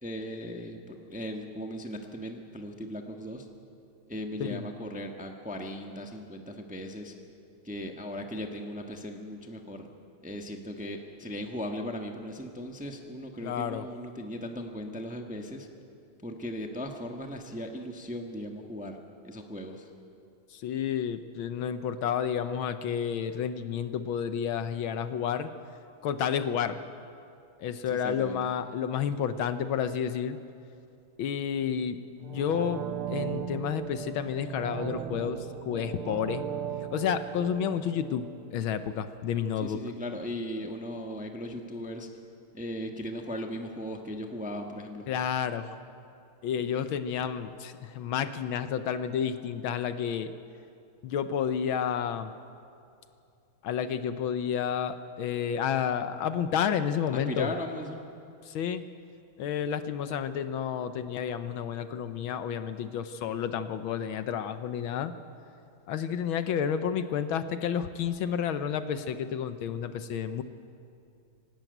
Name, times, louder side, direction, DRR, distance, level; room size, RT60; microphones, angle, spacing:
voice 1, 0.0-3.5 4.1-7.1 7.6-9.9 10.2-15.7 16.2-19.0 19.2-19.9 27.8-28.4 39.6-42.1 42.5-45.1 57.1-58.1, equal, 5° right, 3 dB, 0.9 m, -37 dB
voice 2, 13.4-13.9 20.5-25.5 26.0-26.8 27.6-30.4 31.2-32.8 33.1-36.4 36.9-38.3 38.5-39.8 45.1-45.7 46.4-50.3 51.0-52.3 53.6-57.5 58.4-58.8 59.4-65.1 65.9-70.4, left 8 dB, 70° left, 11 dB, 1.5 m, -30 dB
sound 1, 32.2-39.0 39.4-39.5, right 9 dB, 75° right, 1.9 m, -37 dB
25.0 x 12.0 x 9.2 m, 2.6 s
omnidirectional pair, 2.4 m